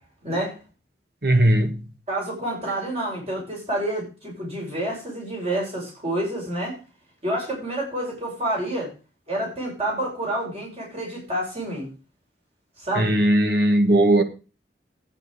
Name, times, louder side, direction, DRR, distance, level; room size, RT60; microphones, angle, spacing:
voice 1, 0.2-0.6 2.1-6.8 7.2-8.9 9.3-11.9 12.8-13.2, right 1 dB, 35° right, 6.5 m, -28 dB
voice 2, 1.2-1.8 13.0-14.2, right 1 dB, 60° right, 1.8 m, -18 dB
14.5 x 9.2 x 4.9 m
head